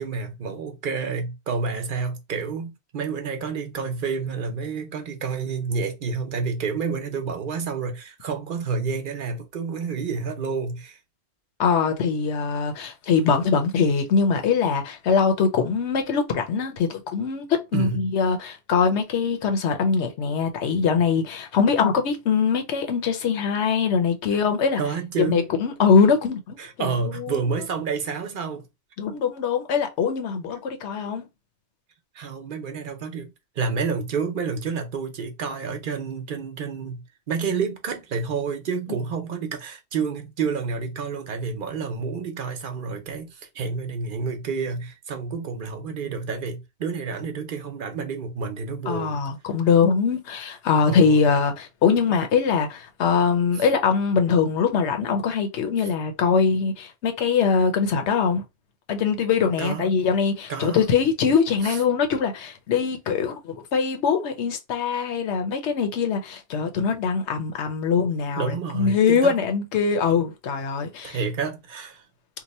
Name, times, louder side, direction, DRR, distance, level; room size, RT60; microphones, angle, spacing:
voice 1, 0.0-11.0 17.7-18.1 24.8-25.4 26.6-28.7 32.1-49.2 50.9-51.2 53.6-53.7 59.6-59.9 60.5-60.9 61.6-61.8 68.4-69.4 71.0-72.0, right 5 dB, 55° right, 0.8 m, -29 dB
voice 2, 11.6-24.8 25.2-27.4 29.0-31.3 48.9-58.4 58.9-71.2, left 6 dB, 80° left, 1.0 m, -22 dB
2.9 x 2.2 x 4.0 m
omnidirectional pair, 1.1 m